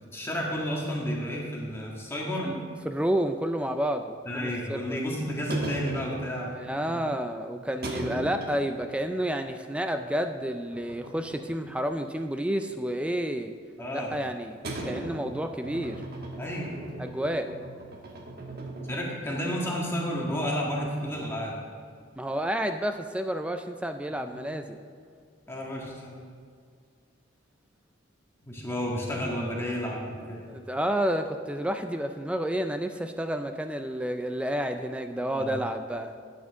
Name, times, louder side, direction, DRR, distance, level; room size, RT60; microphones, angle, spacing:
voice 1, 0.1-2.5 4.2-7.0 13.8-14.2 16.4-16.7 18.8-21.5 24.1-24.6 25.5-26.2 28.4-30.5 35.3-35.6, equal, 15° left, -3 dB, 1.7 m, -32 dB
voice 2, 2.4-5.0 6.5-13.5 13.9-16.0 17.0-17.5 22.2-24.8 30.5-36.1, right 1 dB, 5° right, 7 dB, 0.3 m, -30 dB
sound 1, 5.5-6.8 7.8-9.1 9.5-9.6 10.7-12.0 12.3-13.2 14.6-19.6 19.8-19.9 20.4-20.5 20.8-21.4, right 2 dB, 55° right, 1.2 m, -38 dB
12.0 x 8.8 x 3.6 m, 2.2 s
head